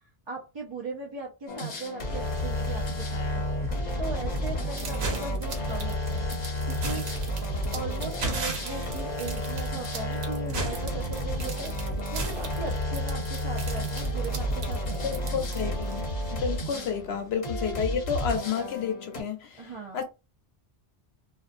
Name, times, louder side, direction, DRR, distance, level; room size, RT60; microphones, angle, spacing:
voice 1, 0.3-3.4 4.0-6.3 6.7-7.1 7.7-15.5 16.7-16.9 19.6-20.0, right 3 dB, 35° right, 0.5 m, -39 dB
sound 1, 1.5-19.2, equal, 45° left, 0.8 m, -31 dB
sound 2, 4.8-16.0, right 3 dB, 80° right, 1.0 m, -36 dB
voice 2, 15.0-16.0 16.3-20.0, left 7 dB, 90° left, 0.9 m, -31 dB
2.6 x 2.2 x 2.5 m
omnidirectional pair, 1.0 m